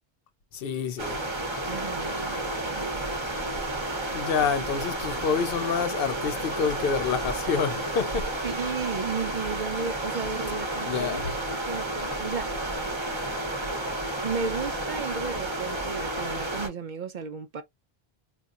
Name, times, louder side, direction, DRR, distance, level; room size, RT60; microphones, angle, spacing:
voice 1, 0.5-1.2 4.1-8.3 10.8-11.3, left 6 dB, 70° left, 0.7 m, -28 dB
sound 1, 1.0-16.7, right 1 dB, 30° right, 0.9 m, -31 dB
voice 2, 1.7-3.0 8.4-11.3 11.5-12.5 14.2-17.6, right 5 dB, 55° right, 0.6 m, -34 dB
4.1 x 2.3 x 2.4 m
omnidirectional pair, 1.0 m